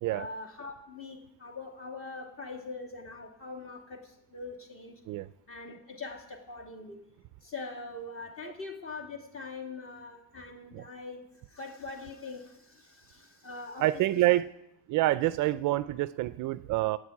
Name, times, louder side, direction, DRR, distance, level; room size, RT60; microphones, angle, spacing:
voice 1, 0.1-5.0 5.5-7.0 7.4-13.9, left 3 dB, 30° left, 2 dB, 2.5 m, -43 dB
voice 2, 13.8-14.5 14.9-17.0, right 16 dB, 50° right, 14 dB, 0.4 m, -27 dB
14.5 x 9.7 x 8.4 m, 0.84 s
cardioid pair, 170°, 42 cm